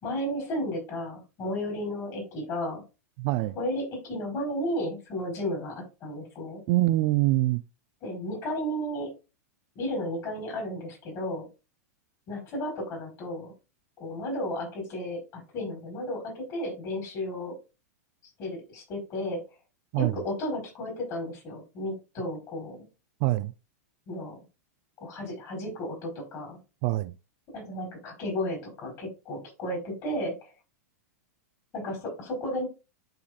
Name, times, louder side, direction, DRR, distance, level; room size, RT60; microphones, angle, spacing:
voice 1, 0.0-2.8 3.5-6.6 8.0-9.1 9.7-11.5 12.3-13.5 14.0-17.5 18.4-19.4 20.0-22.9 24.1-24.4 25.0-26.6 27.5-30.4 31.7-32.7, left 1 dB, 40° left, 4.2 m, -33 dB
voice 2, 3.2-3.5 6.7-7.6 19.9-20.2 23.2-23.5 26.8-27.1, right 17 dB, 50° right, 0.5 m, -24 dB
11.5 x 3.9 x 2.5 m
hypercardioid pair, 120°, 9 cm